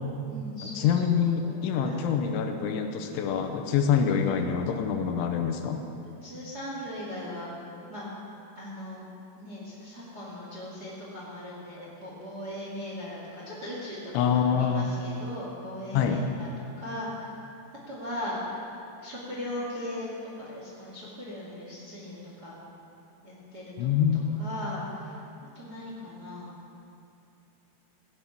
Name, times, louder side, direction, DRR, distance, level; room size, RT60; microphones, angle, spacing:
voice 1, 0.2-0.9 1.4-2.1 4.0-4.2 6.2-7.5 7.9-8.1 8.5-9.0 9.4-16.5 16.8-17.3 17.9-18.4 19.0-20.1 20.4-22.6 23.2-25.2 25.5-26.5, left 1 dB, 35° right, -6 dB, 1.6 m, -39 dB
voice 2, 0.8-5.8 14.1-14.9 15.9-16.2 23.8-24.2, left 7 dB, 85° left, 5 dB, 3.1 m, -25 dB
17.0 x 9.7 x 6.0 m, 2.8 s
omnidirectional pair, 5.6 m